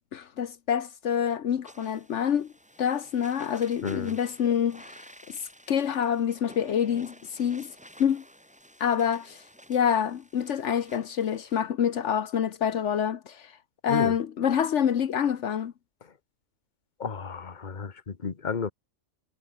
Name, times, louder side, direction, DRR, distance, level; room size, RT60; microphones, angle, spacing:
voice 1, 0.1-2.5 2.8-5.0 5.3-5.4 5.7-7.7 8.0-8.2 8.8-9.4 9.7-13.5 13.8-15.7, left 8 dB, 75° left, 1.3 m, -27 dB
sound 1, 1.6-11.6, equal, 5° right, 3.6 m, -52 dB
voice 2, 17.0-18.7, left 5 dB, 40° left, 1.5 m, -32 dB
omnidirectional pair, 1.2 m